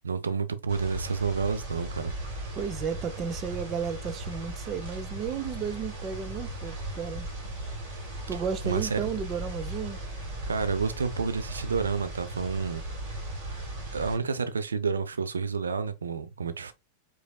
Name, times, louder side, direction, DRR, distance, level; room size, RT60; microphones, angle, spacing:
voice 1, 0.0-2.1 8.6-9.0 10.5-12.8 13.5-13.6 13.9-16.7, right 5 dB, 70° right, 0.6 m, -30 dB
sound 1, 0.7-14.2, right 1 dB, 50° right, 3.3 m, -37 dB
voice 2, 2.5-7.3 8.3-10.0, right 6 dB, 30° right, 0.7 m, -33 dB
5.0 x 4.0 x 2.3 m
figure-of-eight pair, 90°, 0 cm